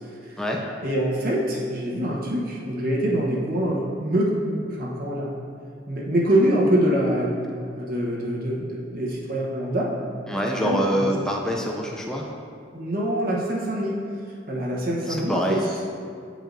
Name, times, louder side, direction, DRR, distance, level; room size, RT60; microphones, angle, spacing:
voice 1, 0.8-5.3 5.9-7.3 7.8-9.9 10.5-11.1 12.7-13.9 14.5-15.6, right 1 dB, 55° right, -4 dB, 1.0 m, -24 dB
voice 2, 10.3-12.3 15.1-15.7, equal, 5° left, -1 dB, 0.4 m, -25 dB
8.9 x 5.0 x 2.6 m, 2.3 s
head